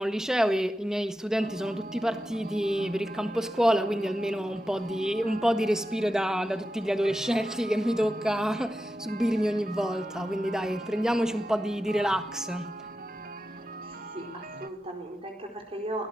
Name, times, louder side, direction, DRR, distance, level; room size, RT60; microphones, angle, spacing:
voice 1, 0.0-12.8, equal, 5° right, 1.5 m, -28 dB
sound 1, 1.4-14.7, right 3 dB, 50° right, 1.8 m, -41 dB
voice 2, 13.5-16.1, right 1 dB, 30° right, 4.4 m, -38 dB
26.5 x 18.5 x 9.0 m
head